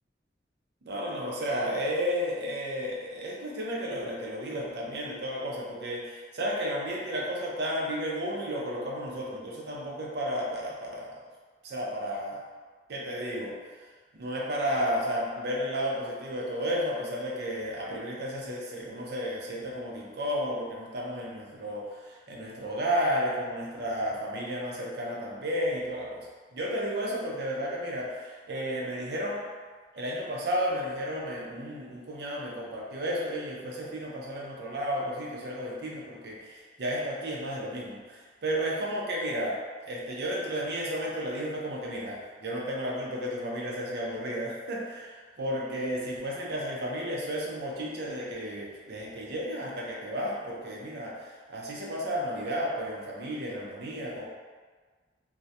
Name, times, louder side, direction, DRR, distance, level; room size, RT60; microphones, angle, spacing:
voice 1, 0.9-11.1 11.6-12.4 12.9-13.6 14.1-26.3 26.5-29.4 29.9-54.3, equal, 65° right, -3 dB, 0.5 m, -33 dB
2.3 x 2.1 x 2.6 m, 1.5 s
head